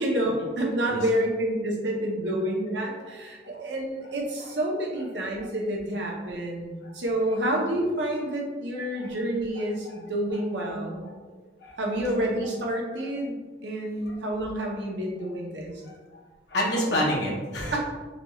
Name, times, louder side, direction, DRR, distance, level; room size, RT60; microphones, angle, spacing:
voice 1, 0.0-11.0 11.8-15.8 17.7-17.8, right 1 dB, 75° right, -1 dB, 0.8 m, -29 dB
voice 2, 5.2-5.5 6.3-6.4 6.8-6.9 9.0-9.1 9.5-10.0 10.3-10.7 11.2-11.3 11.6-11.8 13.0-13.1 14.0-14.2 15.8-16.2 16.5-17.8, equal, 65° left, -3 dB, 0.8 m, -31 dB
4.0 x 3.0 x 2.3 m, 1.3 s
head